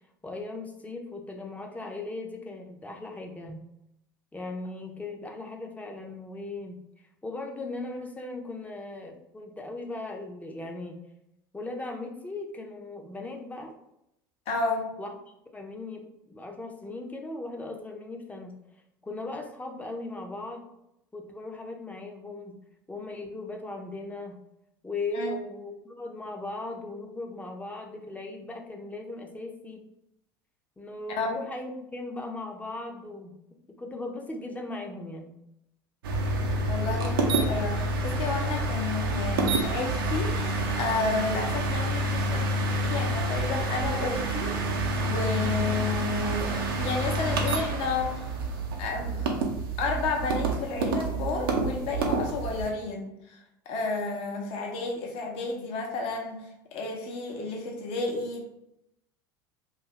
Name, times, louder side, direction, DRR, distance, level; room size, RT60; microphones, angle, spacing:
voice 1, 0.2-3.6 4.3-6.8 7.2-11.0 11.5-13.7 15.0-15.2 15.5-18.6 19.0-20.7 21.1-22.6 22.9-24.4 24.8-29.8 30.8-33.4 33.7-35.4, left 2 dB, 10° left, 2 dB, 0.5 m, -38 dB
voice 2, 14.5-14.8 25.1-25.4 31.1-31.3 36.7-44.5 45.0-48.3 48.8-49.4 49.8-53.4 53.7-58.4, left 3 dB, 55° left, 1 dB, 0.7 m, -31 dB
sound 1, 36.0-52.7, right 2 dB, 80° right, 0.5 m, -28 dB
2.6 x 2.4 x 3.1 m, 0.83 s
hypercardioid pair, 75°, 12 cm